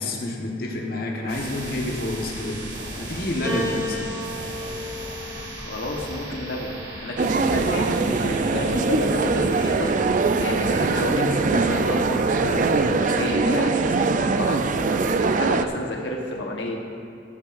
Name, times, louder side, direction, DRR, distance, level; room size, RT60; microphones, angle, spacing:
voice 1, 0.0-2.6 3.0-4.2, left 1 dB, 60° left, 0 dB, 1.3 m, -28 dB
sound 1, 1.3-13.2, right 1 dB, 60° right, 2.7 m, -37 dB
Piano, 3.4-7.9 8.9-9.7, left 1 dB, 25° right, 1.7 m, -35 dB
voice 2, 5.6-9.9 10.4-16.8, left 1 dB, 90° left, 0 dB, 1.2 m, -30 dB
sound 2, 7.2-15.7, right 4 dB, 45° right, 0.4 m, -22 dB
14.0 x 12.5 x 2.6 m, 2.6 s
head